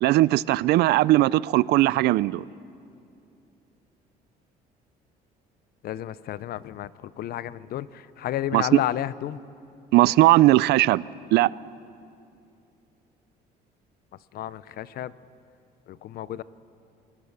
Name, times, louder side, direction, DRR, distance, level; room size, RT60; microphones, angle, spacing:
voice 1, 0.0-2.4 8.5-8.8 9.9-11.0 11.3-11.5, right 17 dB, 80° right, 21 dB, 0.4 m, -19 dB
voice 2, 5.8-9.4 14.3-15.1 15.9-16.4, left 12 dB, 65° left, 18 dB, 0.7 m, -32 dB
28.5 x 19.5 x 6.7 m, 2.6 s
cardioid pair, 110°, 17 cm